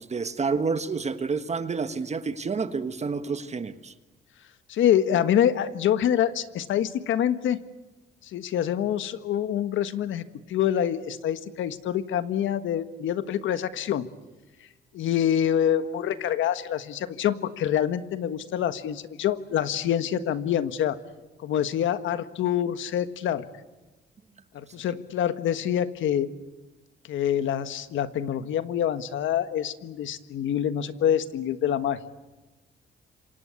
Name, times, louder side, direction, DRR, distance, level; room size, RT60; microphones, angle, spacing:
voice 1, 0.0-3.9, right 4 dB, 35° right, 1.5 m, -29 dB
voice 2, 4.7-7.6 8.3-10.2 10.5-14.1 14.9-21.0 21.4-23.4 24.5-26.3 27.1-32.0, left 10 dB, 80° left, 1.5 m, -26 dB
27.0 x 24.5 x 8.4 m
cardioid pair, 90°, 20 cm